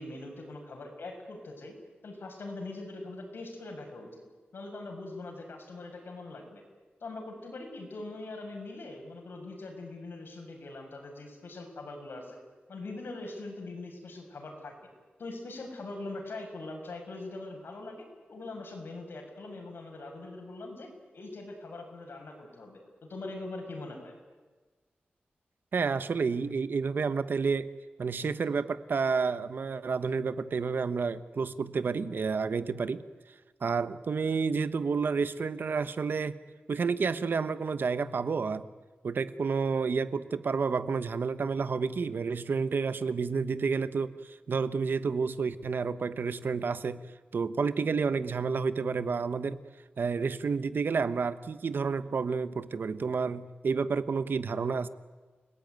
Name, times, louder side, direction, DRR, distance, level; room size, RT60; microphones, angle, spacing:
voice 1, 0.0-1.8 2.0-4.2 4.5-6.6 7.0-12.4 12.7-14.7 15.2-20.9 21.1-24.1, left 2 dB, 80° left, 2 dB, 7.0 m, -42 dB
voice 2, 25.7-27.7 28.0-33.0 33.6-36.4 36.7-38.6 39.0-47.0 47.3-49.6 50.0-54.9, right 5 dB, 70° right, 13 dB, 1.1 m, -30 dB
29.5 x 19.5 x 9.5 m, 1.4 s
wide cardioid pair, 120°, 4 cm